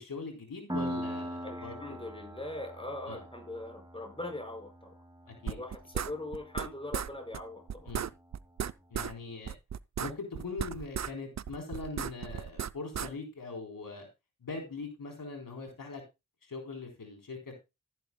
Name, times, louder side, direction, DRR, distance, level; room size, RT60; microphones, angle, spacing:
voice 1, 0.0-2.0 3.1-3.2 5.4-5.6 7.9-8.1 8.9-9.5 10.0-14.1 14.4-16.0 16.4-17.6, left 4 dB, 85° left, 3.9 m, -41 dB
Piano, 0.7-8.1, equal, 15° right, 2.1 m, -42 dB
voice 2, 1.4-4.9 5.4-7.9, left 2 dB, 15° left, 5.5 m, -41 dB
sound 1, 5.5-6.7 6.9-7.1 7.3-7.4 7.7-9.1 9.5-11.1 11.4-13.1, right 8 dB, 55° right, 0.5 m, -35 dB
15.0 x 10.5 x 2.2 m
wide cardioid pair, 65°, 33 cm